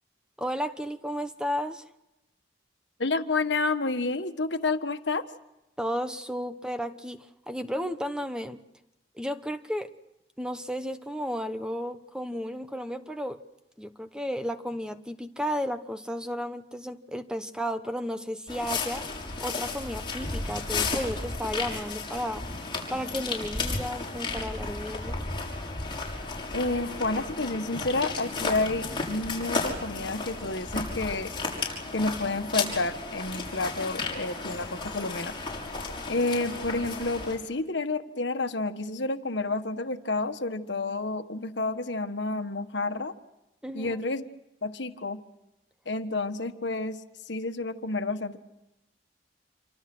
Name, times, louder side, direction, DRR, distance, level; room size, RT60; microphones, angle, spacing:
voice 1, 0.4-1.9 5.8-8.6 9.2-9.9 10.4-13.4 13.8-19.1 19.4-22.4 22.9-25.2 43.6-44.0, equal, 5° right, 9 dB, 1.0 m, -33 dB
voice 2, 3.0-5.2 26.5-31.3 31.9-35.3 36.1-43.1 43.7-44.2 44.6-45.2 45.8-47.0 47.3-48.4, left 3 dB, 75° left, 9 dB, 1.5 m, -30 dB
sound 1, 18.5-37.4, left 3 dB, 25° left, 6.1 m, -33 dB
28.0 x 25.0 x 6.2 m, 0.92 s
head